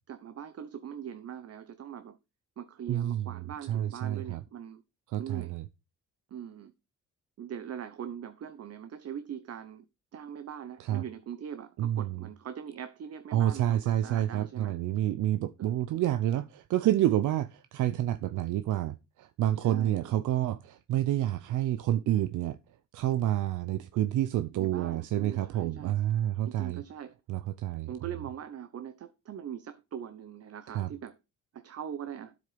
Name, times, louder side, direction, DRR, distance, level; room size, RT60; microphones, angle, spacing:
voice 1, 0.1-2.2 2.6-4.8 5.2-5.6 6.3-6.7 7.4-9.8 10.1-14.8 15.6-15.7 19.6-20.1 24.5-26.0 26.5-27.2 27.9-31.2 31.5-32.3, right 9 dB, 55° right, 1.1 m, -41 dB
voice 2, 2.9-3.2 3.7-4.4 5.1-5.6 10.8-11.0 11.8-12.2 13.3-22.6 22.9-26.8 27.3-27.9 30.7-30.9, right 12 dB, 80° right, 0.7 m, -29 dB
9.9 x 8.1 x 5.1 m
cardioid pair, 90°, 30 cm